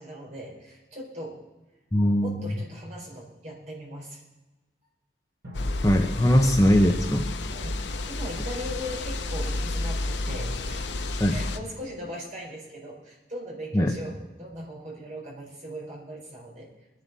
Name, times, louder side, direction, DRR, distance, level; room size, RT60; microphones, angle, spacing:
voice 1, 0.0-1.4 2.2-4.2 6.4-6.6 7.5-7.8 8.1-11.0 11.2-16.7, equal, 40° right, -3 dB, 4.4 m, -39 dB
voice 2, 1.9-2.4 5.8-7.3 11.2-11.4 13.7-13.9, equal, 20° left, 3 dB, 0.8 m, -20 dB
sound 1, 5.5-11.6, left 2 dB, 90° left, 0.8 m, -31 dB
sound 2, 10.3-13.3, left 1 dB, 75° right, 4.9 m, -49 dB
23.0 x 11.0 x 4.1 m, 1.1 s
head